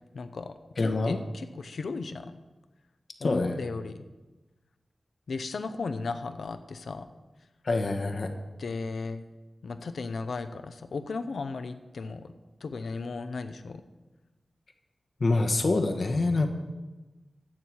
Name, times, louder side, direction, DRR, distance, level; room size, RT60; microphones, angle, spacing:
voice 1, 0.1-2.3 3.2-4.0 5.3-7.1 8.6-9.2 9.6-12.3 12.6-13.8, left 4 dB, 85° left, 10 dB, 0.7 m, -36 dB
voice 2, 0.8-1.2 3.2-3.6 7.6-8.3 15.2-16.5, left 3 dB, 60° left, 4 dB, 1.1 m, -26 dB
13.5 x 4.7 x 8.3 m, 1.2 s
wide cardioid pair, 110°, 0 cm